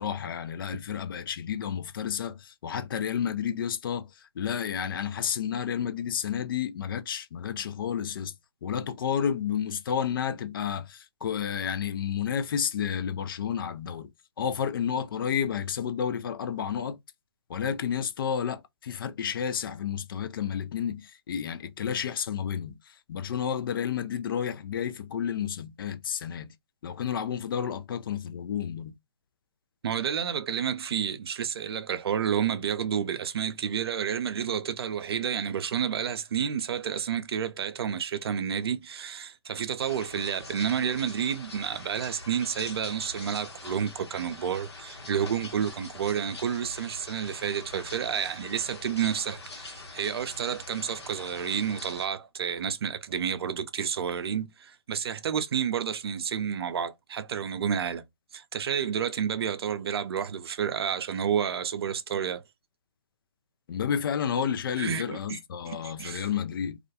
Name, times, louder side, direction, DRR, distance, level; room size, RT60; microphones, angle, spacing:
voice 1, 0.0-8.3 8.6-14.1 14.4-17.0 17.5-26.5 26.8-28.9 63.7-66.8, left 8 dB, 55° left, 0.4 m, -31 dB
voice 2, 29.8-58.0 58.3-62.4 64.8-65.4 65.7-66.3, right 8 dB, 65° right, 0.4 m, -30 dB
sound 1, 39.8-52.1, left 2 dB, 80° left, 1.0 m, -44 dB
2.4 x 2.1 x 2.7 m
figure-of-eight pair, 135°, 14 cm